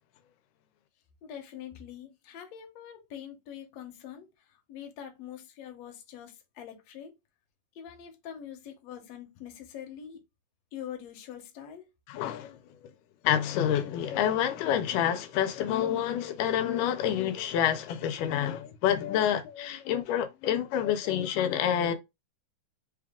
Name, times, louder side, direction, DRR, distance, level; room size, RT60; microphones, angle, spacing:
voice 1, 1.2-7.1 7.8-10.2 10.7-11.9, left 9 dB, 65° left, 1.8 m, -44 dB
voice 2, 12.1-12.6 12.8-12.9 13.2-22.0, left 10 dB, 90° left, 2.2 m, -28 dB
5.2 x 2.3 x 3.5 m
omnidirectional pair, 3.7 m